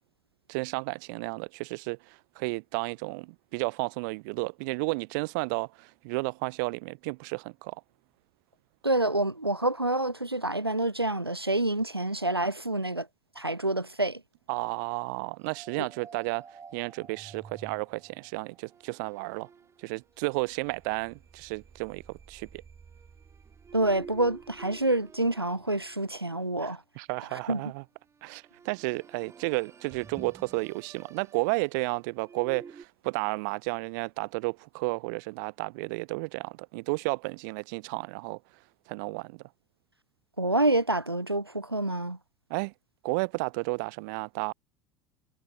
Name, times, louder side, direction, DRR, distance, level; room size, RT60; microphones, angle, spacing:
voice 1, 0.5-7.8 14.5-19.5 19.8-22.5 26.6-27.8 28.2-38.4 38.9-39.4 42.5-42.7 43.0-44.5, right 28 dB, 50° right, 0.4 m, -32 dB
voice 2, 8.8-13.1 13.4-14.2 15.8-15.9 23.7-26.8 27.3-27.6 40.4-42.2, right 2 dB, 90° right, 1.1 m, -27 dB
sound 1, 15.4-26.5 28.1-32.9, right 5 dB, 20° right, 3.3 m, -50 dB
figure-of-eight pair, 70°, 13 cm